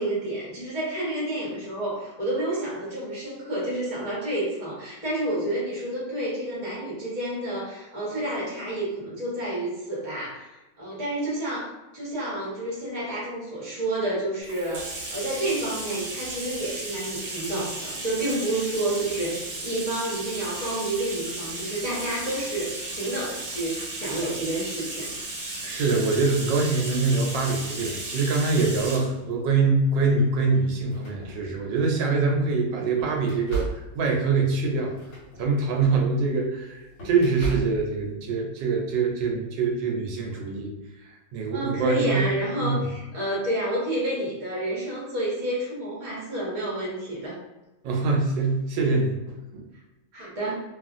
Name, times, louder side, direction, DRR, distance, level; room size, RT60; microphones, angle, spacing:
voice 1, 0.0-25.1 41.5-47.4 50.1-50.6, right 1 dB, 25° right, -7 dB, 1.0 m, -29 dB
Bathtub (filling or washing), 14.4-29.1, right 2 dB, 55° right, 1.1 m, -35 dB
voice 2, 25.6-35.0 35.4-40.7 41.0-42.3 42.6-42.9 47.8-49.7, right 4 dB, 80° right, 0 dB, 1.2 m, -24 dB
sound 1, 29.9-30.0 30.7-32.1 32.5-38.1, right 3 dB, 50° left, 1.0 m, -36 dB
3.0 x 2.4 x 2.5 m, 1.1 s
omnidirectional pair, 2.0 m